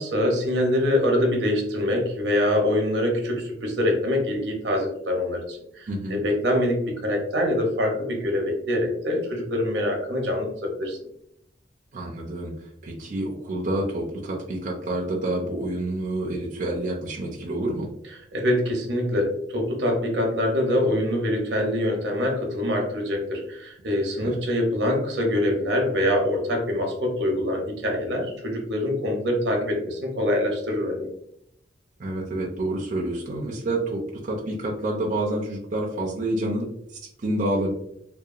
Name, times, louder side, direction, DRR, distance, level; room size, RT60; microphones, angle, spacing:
voice 1, 0.0-11.0 18.3-31.1, left 1 dB, 80° right, 2 dB, 0.7 m, -24 dB
voice 2, 5.9-6.2 11.9-12.5 12.8-17.9 24.2-24.4 32.0-36.7 36.9-37.7, right 1 dB, 45° right, -2 dB, 0.4 m, -28 dB
2.7 x 2.2 x 2.4 m, 0.74 s
head